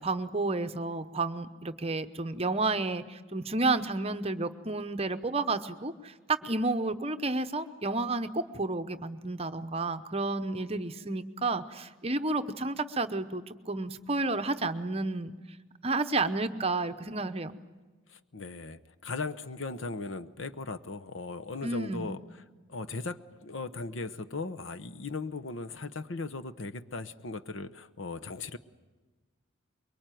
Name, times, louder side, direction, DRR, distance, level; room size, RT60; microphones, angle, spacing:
voice 1, 0.0-15.3 15.8-17.6 21.6-22.2, right 3 dB, 30° right, 10 dB, 0.9 m, -31 dB
voice 2, 18.1-22.2 22.7-28.6, left 3 dB, 70° left, 10 dB, 1.0 m, -38 dB
24.0 x 23.0 x 9.2 m, 1.2 s
head